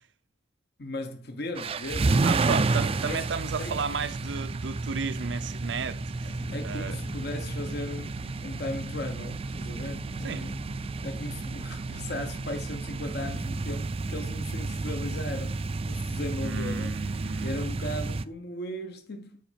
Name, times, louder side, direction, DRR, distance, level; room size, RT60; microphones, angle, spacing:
voice 1, 0.8-2.2 2.5-2.7 3.0-3.3 3.6-3.8 6.5-8.2 8.4-10.7 11.0-17.0 17.4-19.4, left 1 dB, 60° left, 0.9 m, -37 dB
sound 1, 1.5-18.2, right 3 dB, 30° right, 0.4 m, -31 dB
voice 2, 2.2-7.0 10.2-10.5 16.4-17.6, right 5 dB, 75° right, 0.6 m, -33 dB
sound 2, 6.3-14.8, left 3 dB, 30° left, 0.4 m, -48 dB
7.6 x 4.8 x 5.1 m
head